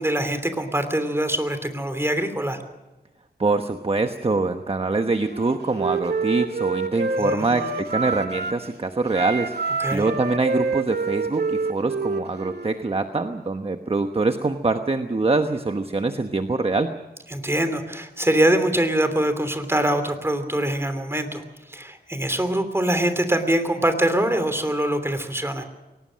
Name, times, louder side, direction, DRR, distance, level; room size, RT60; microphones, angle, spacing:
voice 1, 0.0-2.6 7.2-7.8 9.8-10.1 17.3-25.6, right 1 dB, 15° right, 9 dB, 3.0 m, -24 dB
voice 2, 3.4-16.9, right 3 dB, 35° right, 7 dB, 1.1 m, -24 dB
Wind instrument woodwind instrument, 5.2-8.6 9.1-12.7, right 4 dB, 70° right, 1.9 m, -27 dB
22.5 x 19.5 x 6.4 m, 1.1 s
wide cardioid pair, 80°, 17 cm